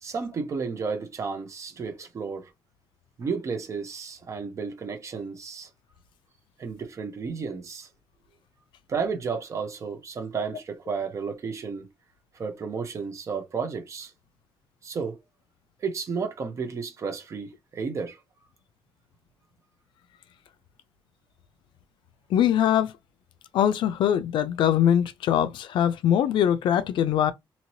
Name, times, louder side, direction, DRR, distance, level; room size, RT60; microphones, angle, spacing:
voice 1, 0.0-2.5 3.2-5.7 6.6-7.9 8.9-11.9 12.3-14.1 14.8-15.2 15.8-18.2, right 5 dB, 35° right, 0.8 m, -32 dB
voice 2, 22.3-22.9 23.5-27.3, left 10 dB, 70° left, 0.4 m, -22 dB
2.8 x 2.8 x 3.0 m
cardioid pair, 160°, 8 cm